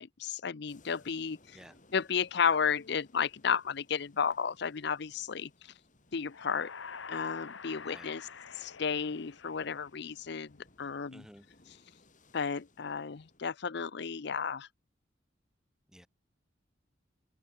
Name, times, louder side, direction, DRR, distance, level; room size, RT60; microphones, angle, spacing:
voice 1, 0.0-1.6 1.9-5.7 6.1-6.7 7.1-8.3 8.5-11.3 12.3-14.7, left 6 dB, 60° left, 0.6 m, -33 dB
sound 1, 0.7-13.4, left 2 dB, 45° left, 3.5 m, -64 dB
sound 2, 6.2-10.1, left 5 dB, 80° left, 1.2 m, -47 dB
voice 2, 7.8-8.2 11.1-11.5 15.9-16.1, equal, 5° right, 1.4 m, -53 dB
head